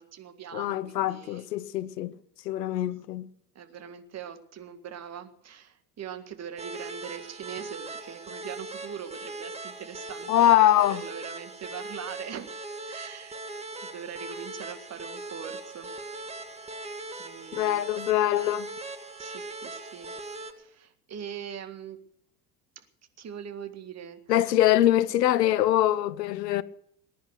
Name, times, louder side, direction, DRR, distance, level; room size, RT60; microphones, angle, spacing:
voice 1, 0.0-1.5 3.6-12.5 12.8-13.4 13.8-15.9 17.2-17.8 19.2-20.1 20.6-22.0 22.8-22.9 23.2-24.4, right 8 dB, 30° right, 2.0 m, -42 dB
voice 2, 0.5-2.1 2.4-3.3 10.3-11.0 17.5-18.7 24.3-26.6, left 12 dB, 75° left, 0.9 m, -23 dB
sound 1, 6.6-20.5, right 2 dB, 15° right, 2.0 m, -40 dB
20.0 x 10.5 x 6.5 m
hypercardioid pair, 75°, 49 cm